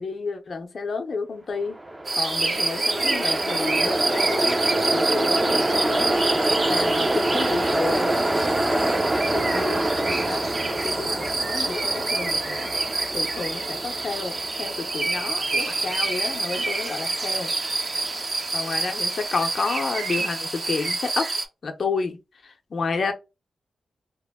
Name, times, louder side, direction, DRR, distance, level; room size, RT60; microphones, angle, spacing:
voice 1, 0.0-1.8 2.1-6.1 6.7-12.7 13.1-17.5 18.5-21.3 21.6-22.2 22.7-23.1, left 4 dB, 60° left, 0.6 m, -31 dB
Train, 1.6-18.8, right 1 dB, 20° right, 0.5 m, -27 dB
sound 1, 2.1-21.4, right 3 dB, 55° right, 0.8 m, -27 dB
3.0 x 2.1 x 3.4 m
cardioid pair, 55°, 0 cm